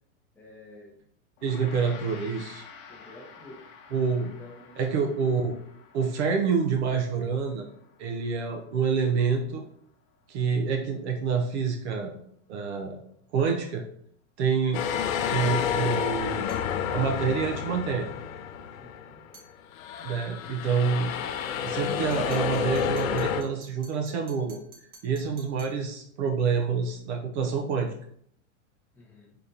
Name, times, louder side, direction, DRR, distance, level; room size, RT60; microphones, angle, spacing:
voice 1, 0.3-1.0 2.9-3.7 4.4-5.0 18.8-19.2 28.9-29.4, left 1 dB, 5° left, -2 dB, 0.7 m, -49 dB
Gong, 1.4-10.8, left 5 dB, 40° left, 0.9 m, -51 dB
voice 2, 1.4-2.6 3.9-4.3 4.8-5.6 5.9-7.7 8.0-9.6 10.3-12.1 12.5-13.0 13.3-13.8 14.4-14.8 15.3-16.5 16.9-18.1 20.0-21.1 21.6-24.6 25.0-27.9, right 5 dB, 55° right, 3 dB, 0.6 m, -27 dB
sound 1, 14.7-19.3 19.7-23.4, left 7 dB, 80° left, 0.6 m, -30 dB
sound 2, 16.5-16.7 19.3-19.5 22.1-25.8, right 3 dB, 90° right, 1.6 m, -53 dB
4.1 x 3.3 x 2.7 m, 0.68 s
hypercardioid pair, 140°, 40 cm